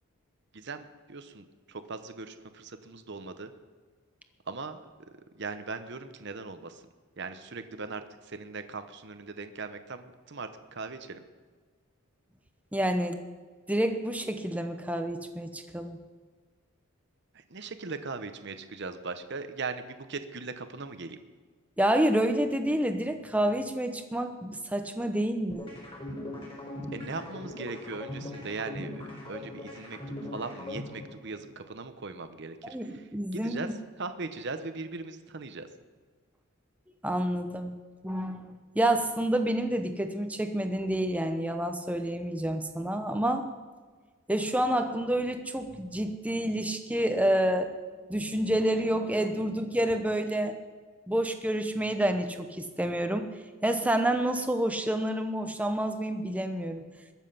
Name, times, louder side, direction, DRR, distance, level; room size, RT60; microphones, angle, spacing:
voice 1, 0.5-3.5 4.5-4.8 5.4-6.8 7.2-11.2 17.5-21.2 26.9-33.1 33.3-33.7 34.0-35.7, right 3 dB, 50° right, 9 dB, 0.9 m, -39 dB
voice 2, 12.7-13.2 13.7-16.0 21.8-25.7 32.6-33.7 37.0-37.8 38.0-43.5 44.3-47.7 48.1-50.5 51.1-53.3 53.6-56.9, right 1 dB, 5° right, 6 dB, 0.8 m, -28 dB
sound 1, 25.5-31.5, left 1 dB, 25° left, 3.9 m, -40 dB
21.5 x 7.4 x 5.6 m, 1.4 s
head